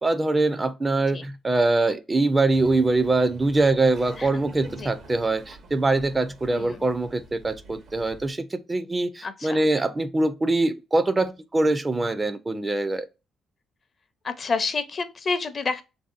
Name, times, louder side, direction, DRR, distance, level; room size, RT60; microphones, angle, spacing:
voice 1, 0.0-13.1, right 2 dB, 25° right, 0.4 m, -23 dB
Laughter, 2.5-8.3, right 3 dB, 65° right, 0.8 m, -46 dB
voice 2, 6.5-6.9 9.2-9.6 14.2-15.8, left 4 dB, 45° left, 0.5 m, -29 dB
3.4 x 2.7 x 2.4 m
cardioid pair, 90°, 0 cm